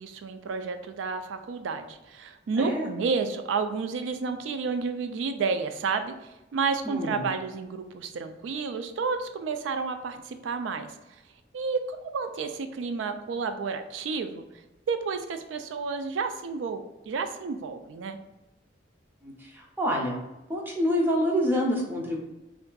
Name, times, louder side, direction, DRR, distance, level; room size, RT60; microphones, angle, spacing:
voice 1, 0.0-6.1 6.5-10.9 11.5-14.4 14.9-18.2, right 5 dB, 90° right, 9 dB, 0.3 m, -31 dB
voice 2, 2.6-2.9 6.8-7.2 19.2-20.2 20.5-22.2, equal, 10° right, -1 dB, 0.5 m, -27 dB
3.5 x 2.4 x 2.2 m, 1.0 s
head